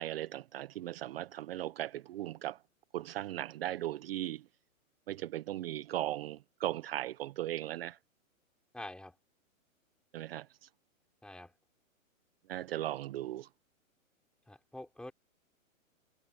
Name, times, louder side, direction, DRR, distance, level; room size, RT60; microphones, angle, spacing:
voice 1, 0.0-2.6 2.9-4.4 5.1-8.0 10.1-10.7 12.5-13.5, right 13 dB, 45° right, 0.9 m, -37 dB
voice 2, 8.7-9.1 11.2-11.5 14.5-15.1, left 1 dB, ahead, 4.1 m, -46 dB
hypercardioid pair, 155°, 41 cm